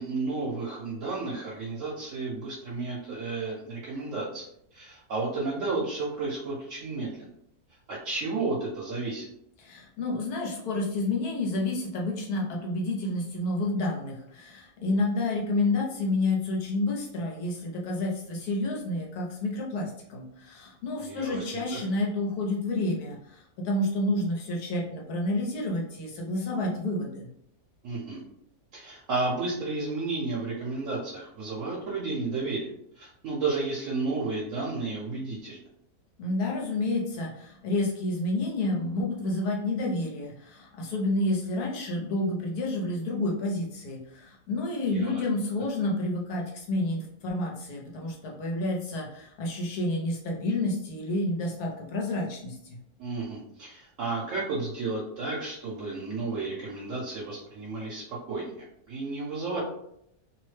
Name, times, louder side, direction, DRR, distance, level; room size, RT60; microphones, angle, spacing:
voice 1, 0.0-4.5 4.7-7.3 7.9-9.3 21.0-21.8 27.8-28.2 28.7-35.7 44.9-45.2 53.0-59.6, right 3 dB, 65° right, -5 dB, 1.0 m, -32 dB
voice 2, 9.6-27.3 36.2-52.8, left 2 dB, 90° left, -1 dB, 1.3 m, -29 dB
2.9 x 2.1 x 3.2 m, 0.74 s
omnidirectional pair, 1.6 m